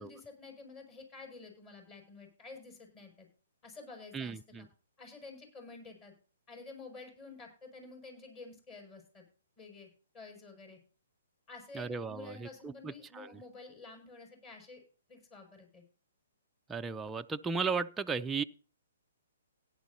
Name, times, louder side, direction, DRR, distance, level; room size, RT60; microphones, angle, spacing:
voice 1, 0.0-3.3 3.6-4.4 5.0-6.1 6.5-9.2 9.6-9.9 10.1-10.8 11.5-14.8 15.1-15.8, left 3 dB, 25° left, 6.7 m, -50 dB
voice 2, 4.1-4.7 11.7-13.3 16.7-18.4, right 5 dB, 10° right, 0.5 m, -35 dB
17.5 x 10.5 x 2.8 m
hypercardioid pair, 135°, 0 cm